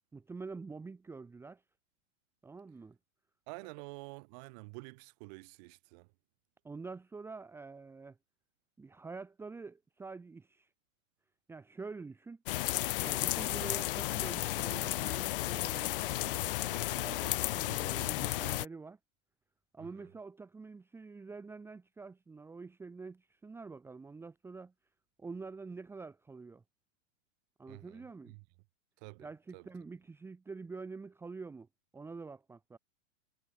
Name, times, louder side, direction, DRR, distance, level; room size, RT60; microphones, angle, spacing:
voice 1, 0.1-1.6 2.4-3.0 6.6-8.2 8.8-10.7 11.5-12.4 13.0-19.0 19.7-24.7 25.2-26.6 27.6-28.3 29.2-31.7 31.9-32.8, right 4 dB, 5° right, 1.4 m, -46 dB
voice 2, 3.5-6.1 19.8-20.1 27.7-28.4 29.0-29.7, right 30 dB, 35° right, 1.2 m, -49 dB
sound 1, 12.5-18.7, left 17 dB, 45° left, 0.6 m, -33 dB
supercardioid pair, 165°, 40 cm